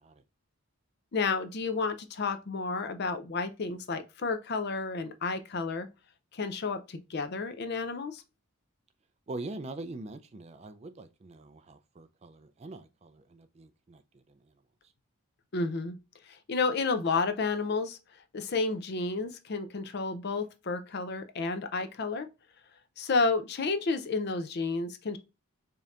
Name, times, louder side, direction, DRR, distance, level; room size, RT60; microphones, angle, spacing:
voice 1, 1.1-5.9 6.3-8.2 15.5-16.0 16.3-18.0 18.3-22.3 23.0-25.2, left 4 dB, 45° left, 0.5 m, -31 dB
voice 2, 9.3-14.4, right 2 dB, 30° right, 0.3 m, -43 dB
5.1 x 2.8 x 2.4 m
head